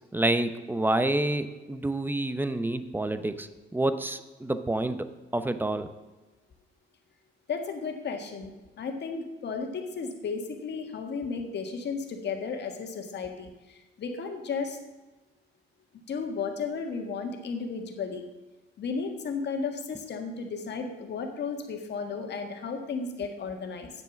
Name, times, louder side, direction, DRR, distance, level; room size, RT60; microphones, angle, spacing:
voice 1, 0.1-5.1 5.3-5.9, right 1 dB, 10° right, 10 dB, 0.8 m, -28 dB
voice 2, 7.5-8.5 8.8-13.5 14.0-14.8 16.1-18.2 18.8-23.9, left 5 dB, 60° left, 4 dB, 1.6 m, -34 dB
8.9 x 7.5 x 5.9 m, 1.1 s
cardioid pair, 90°, 20 cm